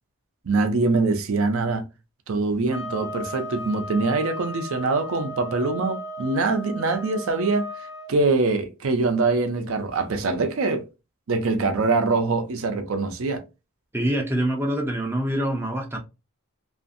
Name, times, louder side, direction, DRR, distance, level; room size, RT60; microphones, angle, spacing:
voice 1, 0.4-1.9 2.3-7.7 8.1-10.8 11.3-13.4, right 3 dB, 65° right, 0.5 m, -23 dB
sound 1, 2.7-8.1, equal, 50° left, 0.6 m, -36 dB
voice 2, 13.9-16.0, right 1 dB, 10° right, 0.4 m, -25 dB
2.6 x 2.5 x 2.5 m
head